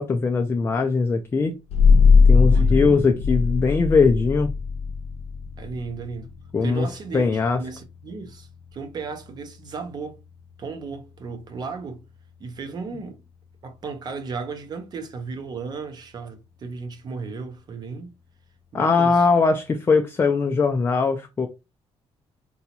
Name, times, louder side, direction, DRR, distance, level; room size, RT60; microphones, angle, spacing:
voice 1, 0.0-1.6 2.3-4.5 6.5-6.9 7.1-7.6 18.7-21.5, left 4 dB, 20° left, 0.3 m, -20 dB
sound 1, 1.7-13.0, left 5 dB, 90° left, 0.6 m, -22 dB
voice 2, 2.5-3.0 5.6-6.3 6.6-7.3 7.6-10.2 10.6-12.0 12.4-13.2 13.6-18.1 18.7-19.3, right 4 dB, 40° right, 0.6 m, -35 dB
3.9 x 2.3 x 2.8 m
cardioid pair, 160°, 10 cm